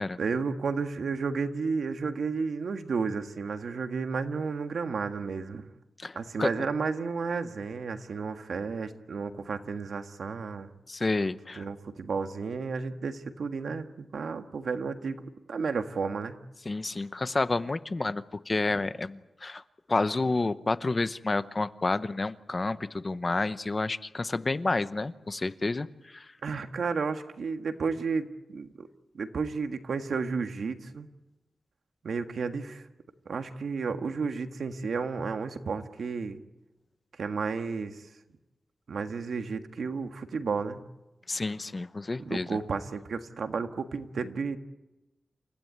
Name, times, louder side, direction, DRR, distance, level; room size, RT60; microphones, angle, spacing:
voice 1, 0.2-5.6 6.2-10.7 11.6-15.2 15.5-16.4 26.4-28.9 29.1-31.1 32.0-32.9 33.3-36.4 37.2-38.0 38.9-40.8 42.3-44.6, right 5 dB, 85° right, 7 dB, 1.6 m, -32 dB
voice 2, 6.0-6.5 10.9-11.6 16.7-19.6 19.9-26.3 41.3-42.5, left 3 dB, 30° left, 13 dB, 0.8 m, -30 dB
29.0 x 15.5 x 9.4 m, 1.0 s
wide cardioid pair, 125°, 0 cm